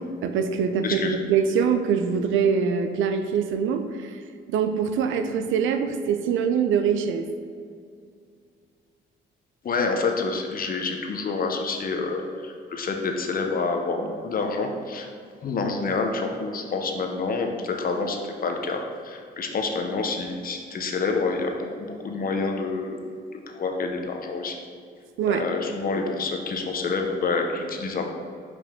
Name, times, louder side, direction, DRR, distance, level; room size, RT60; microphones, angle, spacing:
voice 1, 0.0-4.2 4.5-7.3 25.2-25.4, right 6 dB, 80° right, 8 dB, 0.5 m, -24 dB
voice 2, 0.8-1.2 9.6-15.1 15.4-23.0 23.5-24.6 25.3-28.1, left 4 dB, 45° left, 3 dB, 0.8 m, -28 dB
5.2 x 5.1 x 3.6 m, 2.3 s
cardioid pair, 90°, 20 cm